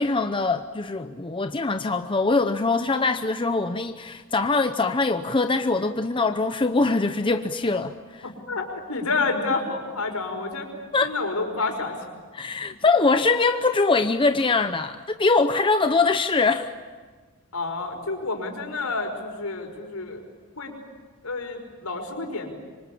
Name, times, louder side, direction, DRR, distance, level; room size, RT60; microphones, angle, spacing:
voice 1, 0.0-8.3 10.9-11.1 12.3-16.7, left 3 dB, 25° left, 8 dB, 0.8 m, -23 dB
voice 2, 8.2-10.7 11.0-12.0 17.5-20.2 20.6-20.7 21.2-22.5, left 3 dB, 75° left, 3 dB, 5.4 m, -29 dB
26.5 x 25.0 x 8.6 m, 1.4 s
head